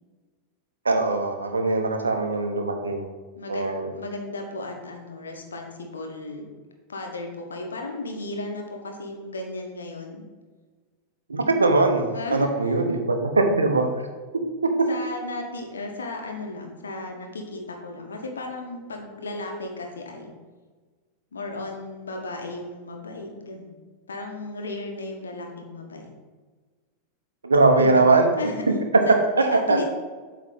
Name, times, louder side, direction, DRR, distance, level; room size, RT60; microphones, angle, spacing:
voice 1, 0.8-3.0 3.5-3.9 11.3-12.0 12.3-13.9 14.6-14.7 27.4-28.3 29.4-29.8, right 3 dB, 75° right, 5 dB, 0.8 m, -21 dB
voice 2, 3.4-3.7 3.9-6.5 6.9-10.2 12.1-12.8 14.9-20.3 21.3-23.8 24.1-26.1 27.6-28.0 28.4-28.6 29.1-29.9, left 2 dB, 70° left, 2 dB, 1.2 m, -35 dB
8.2 x 3.2 x 5.3 m, 1.4 s
figure-of-eight pair, 90°, 0 cm